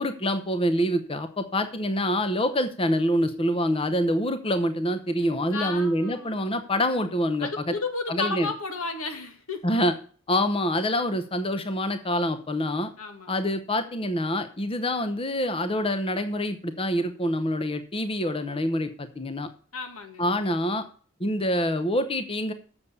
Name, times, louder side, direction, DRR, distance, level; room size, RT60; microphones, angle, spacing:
voice 1, 0.0-7.7 8.1-8.5 9.6-9.9 10.3-12.9 13.3-19.5 20.2-20.9 21.2-22.5, equal, 25° left, 9 dB, 0.8 m, -26 dB
voice 2, 5.5-6.4 7.4-9.7 13.0-13.3 19.7-20.3, left 3 dB, 90° left, 6 dB, 2.1 m, -33 dB
7.6 x 7.1 x 8.2 m, 0.43 s
head